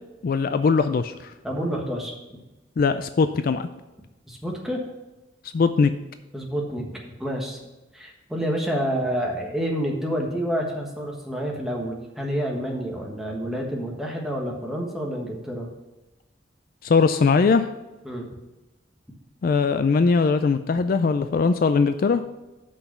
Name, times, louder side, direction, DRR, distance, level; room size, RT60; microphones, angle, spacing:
voice 1, 0.2-1.3 2.8-3.7 5.5-5.9 16.8-17.7 19.4-22.2, left 4 dB, 50° left, 10 dB, 0.3 m, -20 dB
voice 2, 1.4-2.1 4.3-4.8 6.3-7.6 7.9-15.7 18.0-18.3, equal, ahead, -1 dB, 1.3 m, -28 dB
6.3 x 5.8 x 6.7 m, 1.0 s
head